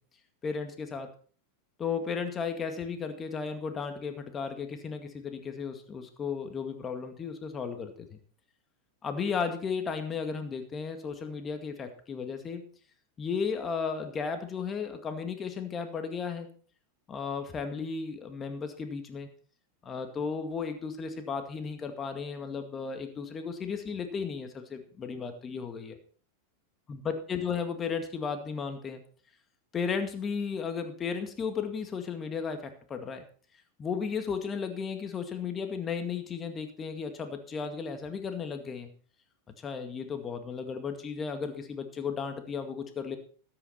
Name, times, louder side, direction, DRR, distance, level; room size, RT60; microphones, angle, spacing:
voice 1, 0.4-1.1 1.8-8.2 9.0-12.6 13.2-16.5 17.1-19.3 19.8-26.0 26.9-29.0 29.7-33.2 33.8-38.9 39.6-43.2, left 6 dB, 25° left, 7 dB, 2.1 m, -34 dB
13.5 x 9.9 x 4.3 m, 0.43 s
hypercardioid pair, 100°, 0 cm